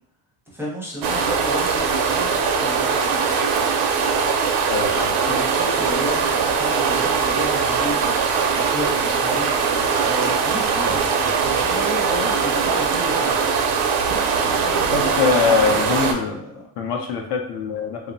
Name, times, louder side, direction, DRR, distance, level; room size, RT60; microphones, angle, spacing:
voice 1, 0.5-3.0 5.2-9.6 10.0-13.3 14.4-16.6, equal, 5° right, -5 dB, 0.5 m, -32 dB
sound 1, 1.0-16.1, right 5 dB, 80° right, 0.6 m, -21 dB
voice 2, 4.7-5.1 14.9-16.4 16.8-18.0, left 5 dB, 55° left, 2 dB, 0.5 m, -22 dB
2.8 x 2.1 x 2.6 m, 0.65 s
cardioid pair, 125°, 49 cm